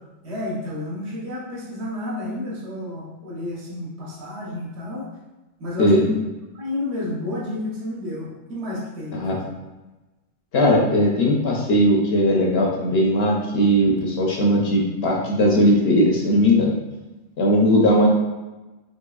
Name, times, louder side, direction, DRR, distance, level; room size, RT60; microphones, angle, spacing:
voice 1, 0.2-5.1 5.6-6.1 6.5-9.4, left 1 dB, 65° right, -6 dB, 1.2 m, -31 dB
voice 2, 10.5-16.7 17.4-18.1, equal, 60° left, -2 dB, 0.9 m, -18 dB
4.0 x 3.1 x 2.3 m, 1.1 s
omnidirectional pair, 1.3 m